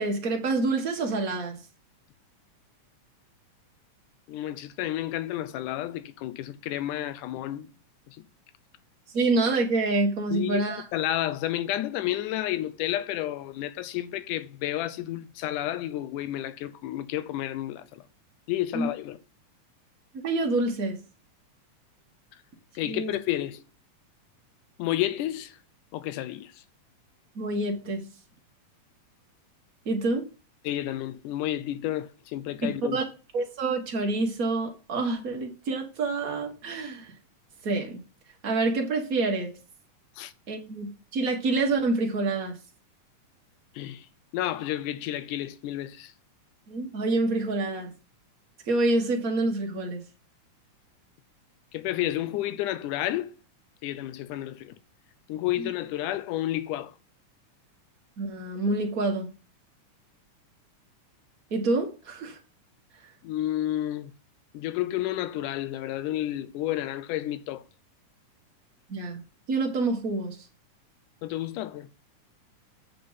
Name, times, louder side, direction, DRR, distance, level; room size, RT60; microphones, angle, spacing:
voice 1, 0.0-1.6 9.1-10.8 18.7-18.9 20.1-21.0 22.8-23.2 27.3-28.0 29.8-30.2 32.6-33.1 33.3-37.1 37.6-38.0 38.4-39.5 40.5-42.6 46.7-47.9 48.7-50.0 55.6-55.7 58.2-59.3 61.5-62.4 68.9-69.2 69.5-70.4, right 2 dB, 40° right, 1.3 m, -27 dB
voice 2, 4.3-7.7 8.1-8.3 10.3-18.0 18.5-19.2 22.8-23.6 24.8-25.6 25.9-26.5 30.6-33.0 40.2-40.3 43.8-44.1 44.3-46.1 51.7-53.3 53.8-54.8 55.3-56.9 63.2-64.1 64.5-67.6 71.2-71.9, left 13 dB, 90° left, 2.2 m, -31 dB
8.4 x 5.8 x 4.0 m
omnidirectional pair, 3.6 m